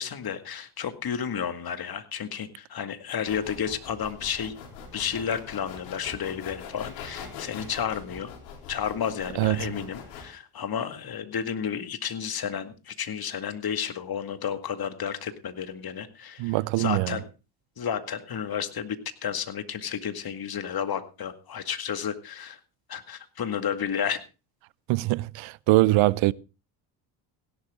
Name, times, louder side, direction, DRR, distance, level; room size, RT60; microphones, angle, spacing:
voice 1, 0.0-4.5 4.9-8.3 8.7-17.3 17.8-19.0 19.2-22.6 22.9-24.2, left 8 dB, 45° left, 2.1 m, -32 dB
sound 1, 3.2-10.2, left 7 dB, 85° left, 3.9 m, -42 dB
voice 2, 16.4-17.2 24.9-26.3, right 19 dB, 65° right, 0.7 m, -23 dB
16.5 x 11.5 x 3.7 m
hypercardioid pair, 60°, 50 cm